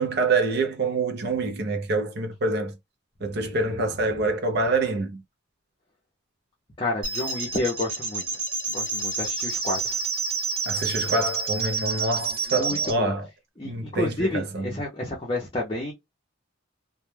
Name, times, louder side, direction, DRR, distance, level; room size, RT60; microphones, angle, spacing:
voice 1, 0.0-2.7 3.2-5.2 10.7-13.3 13.6-14.8, right 3 dB, 50° right, 0.5 m, -26 dB
voice 2, 6.8-8.3 8.7-10.0 12.5-13.1 13.6-15.9, left 2 dB, 25° left, 0.5 m, -30 dB
sound 1, 7.0-12.9, right 4 dB, 80° right, 1.0 m, -29 dB
2.2 x 2.1 x 3.1 m
head